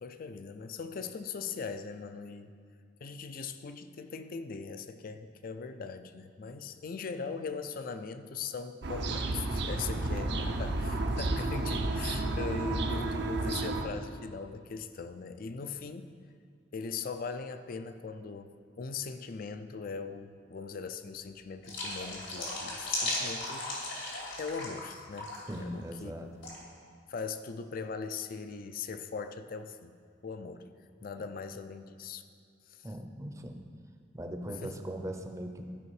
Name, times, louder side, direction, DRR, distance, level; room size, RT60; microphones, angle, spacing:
voice 1, 0.0-2.5 3.0-16.1 16.7-23.9 24.4-26.1 27.1-29.9 30.2-30.7 31.0-32.2 32.7-32.9 34.5-34.7, left 5 dB, 50° left, 10 dB, 0.4 m, -40 dB
sound 1, 8.8-13.9, right 2 dB, 65° right, 0.6 m, -32 dB
sound 2, 21.6-24.9 25.2-25.6 26.4-26.6, left 2 dB, 80° left, 2.3 m, -36 dB
voice 2, 25.5-26.3 31.2-31.3 32.8-33.7 34.1-35.7, equal, 15° right, 4 dB, 0.6 m, -39 dB
12.5 x 5.1 x 4.8 m, 2.3 s
head